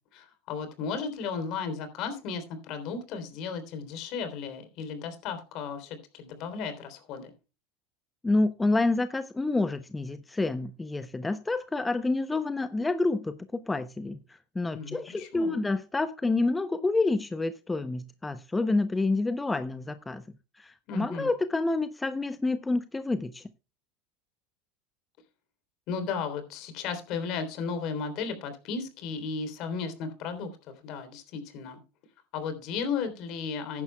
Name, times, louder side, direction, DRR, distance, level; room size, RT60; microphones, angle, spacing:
voice 1, 0.1-7.3 14.7-15.6 20.9-21.3 25.9-31.8 32.3-33.8, left 5 dB, 55° left, 3.3 m, -35 dB
voice 2, 8.2-14.2 14.5-20.2 20.6-23.5, left 2 dB, 15° left, 0.7 m, -28 dB
14.5 x 11.0 x 2.2 m
hypercardioid pair, 100°, 0 cm